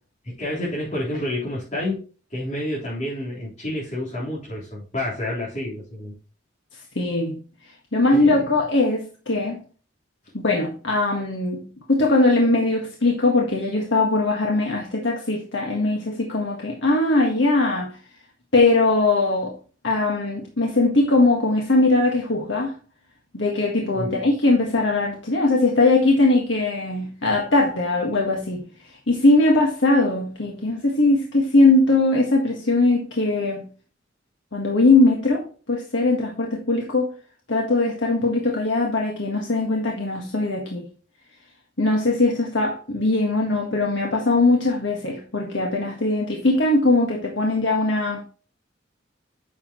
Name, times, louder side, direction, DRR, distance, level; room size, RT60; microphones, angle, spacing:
voice 1, 0.2-6.2 8.1-8.6 23.9-24.2, left 1 dB, 40° left, 3.8 m, -29 dB
voice 2, 6.9-7.4 7.9-9.6 10.3-18.0 18.5-19.5 19.8-22.7 23.3-28.7 29.1-33.6 34.5-37.1 37.5-40.9 41.8-48.2, left 2 dB, 80° left, 1.7 m, -20 dB
9.8 x 7.0 x 3.0 m
head